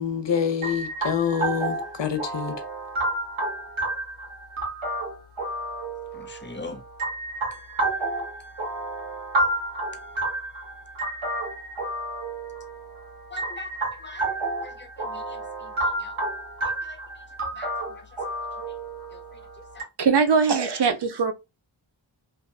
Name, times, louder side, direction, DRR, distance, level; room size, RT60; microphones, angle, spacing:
voice 1, 0.0-2.5, left 7 dB, 65° left, 0.7 m, -26 dB
sound 1, 0.6-19.8, right 2 dB, 80° right, 1.2 m, -31 dB
voice 2, 6.1-6.8 7.5-7.6 13.3-13.7 14.0-16.2 16.8-17.0 17.4-18.1 18.7-18.8 19.1-19.9, left 3 dB, 25° left, 0.6 m, -43 dB
voice 3, 20.0-21.3, right 5 dB, 60° right, 0.6 m, -21 dB
2.6 x 2.5 x 2.3 m
cardioid pair, 40°, 47 cm